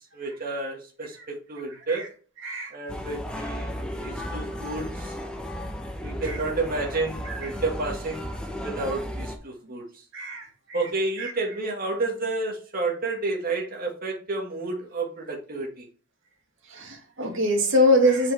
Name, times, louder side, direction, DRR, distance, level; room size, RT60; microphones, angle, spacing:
voice 1, 0.0-2.1 2.7-3.7 4.0-5.2 6.0-8.4 8.6-9.8 10.7-15.9, right 3 dB, 45° right, 0 dB, 2.0 m, -30 dB
sound 1, 2.9-9.4, equal, 5° left, 1.0 m, -34 dB
voice 2, 10.1-10.4 11.2-11.3 16.7-18.3, left 1 dB, 60° right, 1 dB, 2.3 m, -23 dB
7.8 x 5.4 x 3.5 m, 0.39 s
head